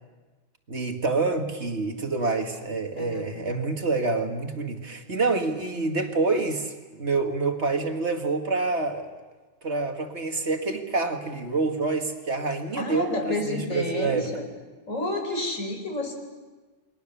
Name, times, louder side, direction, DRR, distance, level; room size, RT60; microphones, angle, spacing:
voice 1, 0.7-9.1 9.6-14.3, right 3 dB, 60° right, 4 dB, 2.3 m, -27 dB
voice 2, 2.9-3.3 12.8-14.4 14.9-16.1, left 2 dB, 85° left, 4 dB, 4.7 m, -30 dB
29.0 x 22.0 x 7.0 m, 1.3 s
omnidirectional pair, 1.3 m